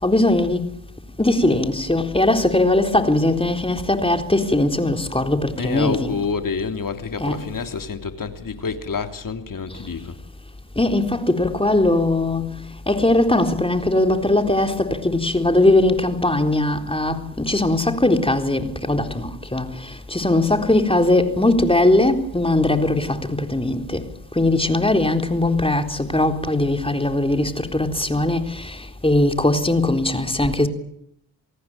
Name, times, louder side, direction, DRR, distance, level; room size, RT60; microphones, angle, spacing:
voice 1, 0.0-0.6 1.2-6.2 7.2-7.4 10.8-12.4 12.9-19.7 20.1-24.0 24.4-30.7, left 2 dB, 10° left, 3.8 m, -20 dB
voice 2, 5.6-10.1, left 5 dB, 45° left, 3.3 m, -28 dB
28.5 x 18.5 x 9.1 m
supercardioid pair, 45°, 43 cm